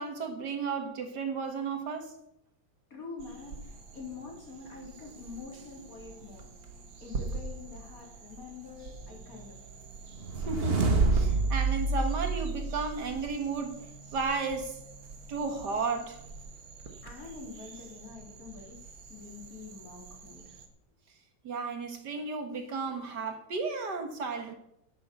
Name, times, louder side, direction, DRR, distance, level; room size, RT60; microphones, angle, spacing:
voice 1, 0.0-2.1 10.5-13.9 14.1-14.8 15.3-16.2 21.4-24.5, right 4 dB, 65° right, 6 dB, 2.0 m, -33 dB
voice 2, 2.9-9.6 17.0-20.5, left 4 dB, 50° left, -1 dB, 4.1 m, -46 dB
sound 1, 3.2-20.7, right 4 dB, 90° right, 2.2 m, -41 dB
sound 2, 10.2-13.4, right 3 dB, 35° right, 1.4 m, -28 dB
10.0 x 9.0 x 6.9 m, 0.78 s
omnidirectional pair, 2.0 m